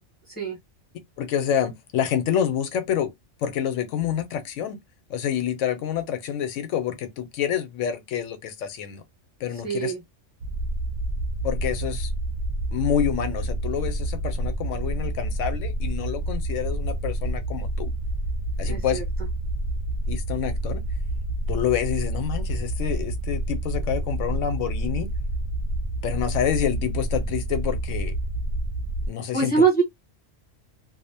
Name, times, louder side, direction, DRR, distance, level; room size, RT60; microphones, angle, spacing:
voice 1, 1.2-3.1 3.4-4.8 5.1-9.0 9.4-9.9 11.4-12.1 12.7-17.9 18.6-19.0 20.1-20.8 21.5-25.1 26.0-28.1 29.1-29.5, left 9 dB, 85° left, 1.0 m, -27 dB
voice 2, 9.6-10.0 18.6-19.0 29.3-29.8, right 5 dB, 10° left, 1.0 m, -22 dB
sound 1, 10.4-29.1, right 1 dB, 65° right, 0.8 m, -28 dB
2.6 x 2.0 x 2.6 m
omnidirectional pair, 1.3 m